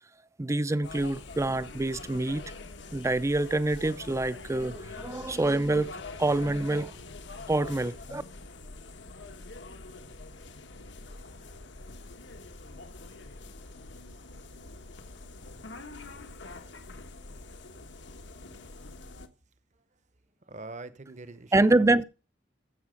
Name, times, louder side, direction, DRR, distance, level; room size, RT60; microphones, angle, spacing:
voice 1, 0.4-2.4 2.9-6.9 7.5-8.2 21.5-22.0, right 2 dB, 15° right, 0.4 m, -26 dB
sound 1, 0.8-19.3, left 3 dB, 80° left, 1.2 m, -45 dB
voice 2, 20.4-22.0, right 2 dB, 40° right, 0.9 m, -44 dB
15.0 x 6.0 x 5.1 m
head